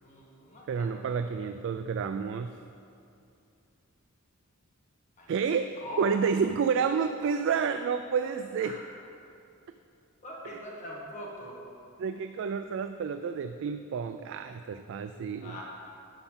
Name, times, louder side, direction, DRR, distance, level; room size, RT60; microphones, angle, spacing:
voice 1, 0.0-0.9 5.2-5.3 5.8-6.1 8.6-8.7 10.2-11.6 15.4-15.6, equal, 35° left, -4 dB, 1.5 m, -42 dB
voice 2, 0.7-2.5 5.3-8.8 10.4-10.6 12.0-15.6, right 6 dB, 60° right, 9 dB, 0.3 m, -30 dB
11.5 x 5.5 x 5.7 m, 2.7 s
head